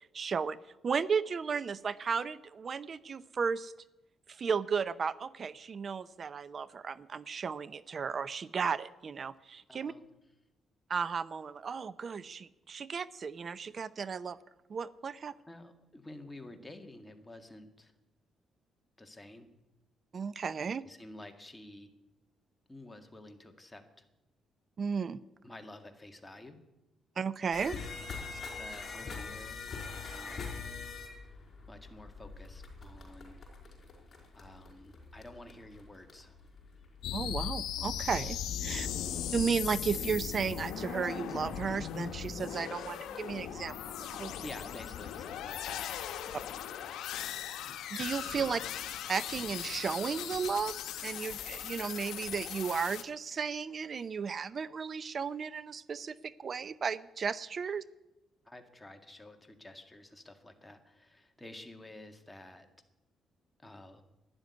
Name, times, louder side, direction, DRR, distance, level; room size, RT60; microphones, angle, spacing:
voice 1, 0.1-0.6 0.8-3.7 4.3-9.9 10.9-14.4 14.7-15.3 20.1-20.8 24.8-25.2 27.2-27.8 28.3-28.4 37.1-38.9 39.3-44.3 47.9-48.6 49.1-57.8, right 6 dB, 45° right, 17 dB, 0.6 m, -34 dB
voice 2, 9.7-10.1 15.5-17.9 19.0-19.5 20.8-21.9 22.7-24.0 25.4-26.6 28.6-30.8 31.7-33.4 34.3-36.4 38.6-39.0 44.4-45.9 46.7-47.1 47.7-47.8 48.3-48.5 58.5-62.7 63.6-64.0, left 1 dB, 10° left, 5 dB, 2.0 m, -50 dB
sound 1, 27.5-42.9 43.6-43.8 44.1-44.8 45.4-45.5 46.0-46.1, left 4 dB, 40° left, 4.7 m, -45 dB
sound 2, 37.0-53.0, left 10 dB, 80° left, 1.0 m, -38 dB
12.5 x 10.5 x 9.6 m, 0.96 s
cardioid pair, 90°, 0 cm